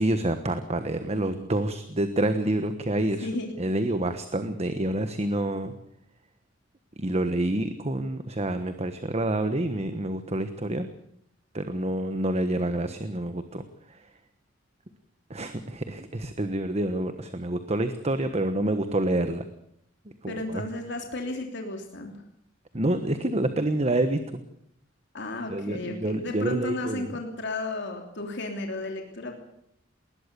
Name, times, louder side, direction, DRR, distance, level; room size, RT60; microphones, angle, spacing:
voice 1, 0.0-3.3 3.6-5.7 7.0-10.9 11.5-14.1 15.3-19.4 20.2-20.6 22.7-24.2 25.5-27.2, right 1 dB, 35° right, 9 dB, 1.3 m, -28 dB
voice 2, 3.2-3.5 20.3-22.2 25.1-29.3, left 2 dB, 65° left, 3 dB, 3.1 m, -33 dB
20.5 x 20.0 x 6.9 m, 0.74 s
head